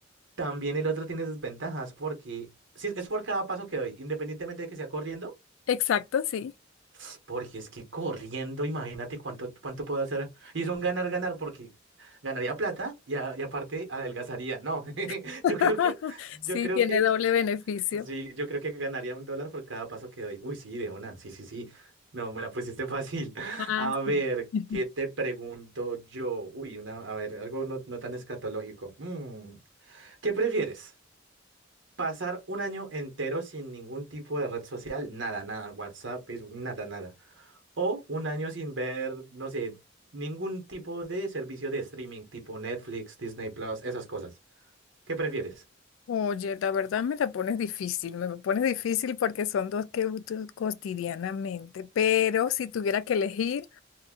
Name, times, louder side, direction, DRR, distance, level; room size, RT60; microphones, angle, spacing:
voice 1, 0.4-2.5 2.7-5.3 7.0-11.7 12.0-17.0 18.0-24.5 24.7-29.6 29.8-30.9 32.0-39.8 40.1-44.3 45.1-45.6, right 3 dB, 70° right, 1.1 m, -34 dB
voice 2, 5.7-6.5 15.4-16.1 16.5-18.1 23.7-23.9 24.5-24.8 46.1-53.8, left 8 dB, 85° left, 0.3 m, -28 dB
2.5 x 2.4 x 3.6 m
head